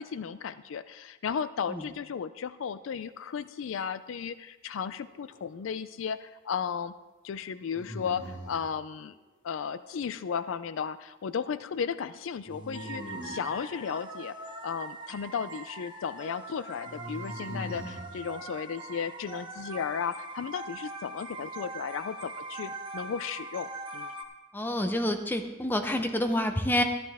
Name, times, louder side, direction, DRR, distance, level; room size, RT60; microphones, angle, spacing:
voice 1, 0.0-6.9 7.2-9.2 9.4-14.4 14.6-24.1, left 6 dB, 70° left, 14 dB, 0.4 m, -35 dB
sound 1, 5.0-5.7 7.7-8.7 12.5-13.5 16.8-18.1, equal, 35° left, 1.8 m, -41 dB
sound 2, 12.7-24.2, right 2 dB, 25° right, 1.0 m, -42 dB
voice 2, 24.5-26.8, left 1 dB, 10° left, 6 dB, 0.7 m, -28 dB
13.0 x 11.0 x 3.5 m, 1.2 s
head